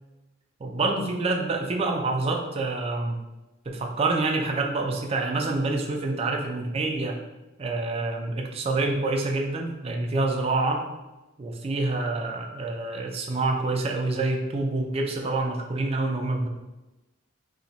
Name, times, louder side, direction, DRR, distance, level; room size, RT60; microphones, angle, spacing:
voice 1, 0.6-3.2 3.7-7.2 7.6-10.8 11.4-16.5, right 2 dB, 30° right, 2 dB, 0.3 m, -27 dB
2.8 x 2.1 x 3.9 m, 1.1 s
head